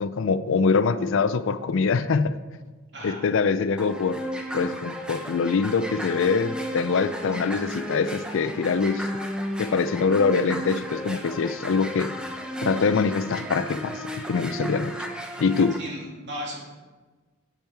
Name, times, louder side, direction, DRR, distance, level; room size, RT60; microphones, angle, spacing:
voice 1, 0.0-2.4 3.0-4.2 4.5-9.1 9.6-12.1 12.6-14.0 14.3-15.1 15.4-15.8, left 5 dB, 65° left, 13 dB, 0.4 m, -24 dB
sound 1, 3.8-15.8, equal, 5° right, 0.8 m, -34 dB
voice 2, 15.8-16.6, equal, 55° right, -2 dB, 2.7 m, -35 dB
10.0 x 7.1 x 4.6 m, 1.3 s
head